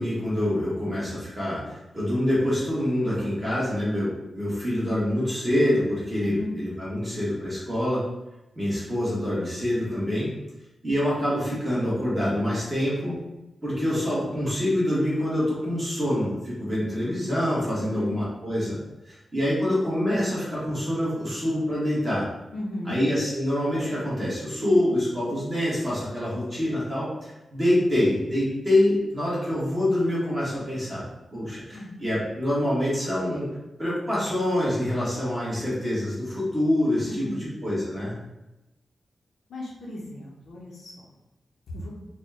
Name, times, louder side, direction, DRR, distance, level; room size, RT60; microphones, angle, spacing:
voice 1, 0.0-8.0 8.5-10.3 10.8-13.2 13.6-18.8 19.1-22.3 22.8-31.0 31.3-33.5 33.8-38.2, left 1 dB, 25° right, -9 dB, 1.4 m, -26 dB
voice 2, 6.2-6.5 17.7-18.1 22.5-23.0 31.7-32.0 37.1-37.4 39.5-41.0 41.7-41.9, left 1 dB, 90° left, -4 dB, 0.7 m, -35 dB
4.1 x 2.2 x 3.6 m, 0.98 s
wide cardioid pair, 130°, 0 cm